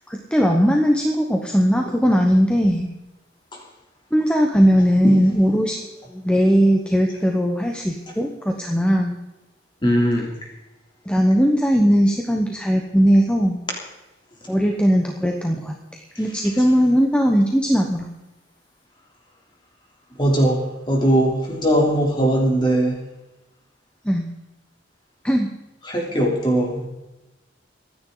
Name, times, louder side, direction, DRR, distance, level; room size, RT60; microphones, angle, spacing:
voice 1, 0.1-2.9 4.1-9.1 11.1-13.6 14.5-18.1 24.0-24.3 25.2-25.5, equal, 5° left, 2 dB, 1.0 m, -19 dB
voice 2, 9.8-10.3 20.2-23.0 25.9-26.9, right 1 dB, 25° left, 0 dB, 3.2 m, -19 dB
24.5 x 9.7 x 3.9 m, 1.0 s
head